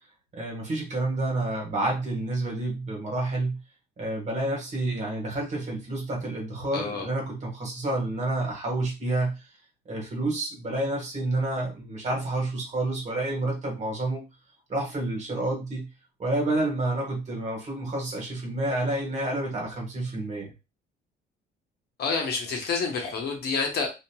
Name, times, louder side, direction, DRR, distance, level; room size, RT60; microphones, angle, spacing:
voice 1, 0.3-3.6 4.0-9.4 9.9-14.2 14.7-15.9 16.2-20.5, right 2 dB, 40° right, -1 dB, 1.4 m, -29 dB
voice 2, 6.7-7.1 22.0-23.9, left 4 dB, 60° left, 2 dB, 0.9 m, -28 dB
2.9 x 2.5 x 2.2 m, 0.27 s
cardioid pair, 110°, 18 cm